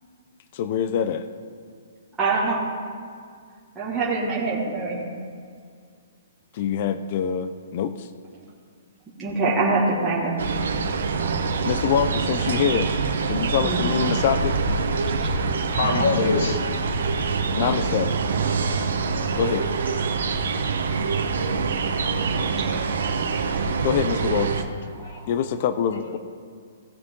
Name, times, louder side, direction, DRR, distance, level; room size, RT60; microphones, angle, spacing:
voice 1, 0.5-1.3 6.5-8.1 11.6-12.9 13.3-14.6 17.6-18.1 19.4-19.7 23.8-24.6 25.2-26.2, left 8 dB, 40° left, 11 dB, 0.5 m, -25 dB
voice 2, 2.2-2.6 3.8-5.0 9.2-10.4 13.6-13.9 15.9-16.1 17.4-17.7 25.0-25.2, right 3 dB, 10° right, -9 dB, 1.8 m, -24 dB
sound 1, 10.4-24.6, right 4 dB, 80° right, 1.1 m, -25 dB
voice 3, 15.4-16.7 23.5-23.7 25.0-25.2 25.9-26.2, left 4 dB, 55° left, 4 dB, 1.6 m, -25 dB
17.5 x 6.6 x 3.7 m, 2.2 s
hypercardioid pair, 165°, 0 cm